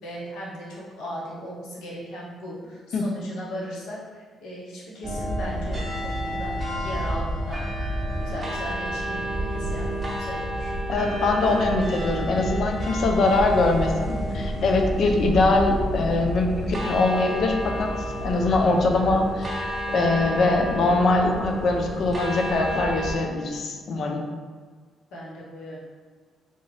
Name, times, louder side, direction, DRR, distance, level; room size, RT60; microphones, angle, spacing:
voice 1, 0.0-7.7 8.2-9.9 10.2-10.7 25.1-25.8, equal, 85° left, -5 dB, 1.0 m, -37 dB
sound 1, 5.0-23.2, equal, 30° right, 0.9 m, -29 dB
voice 2, 10.9-17.9 18.2-24.3, left 2 dB, 65° left, 2 dB, 0.5 m, -22 dB
3.6 x 2.6 x 3.2 m, 1.5 s
cardioid pair, 90°, 0 cm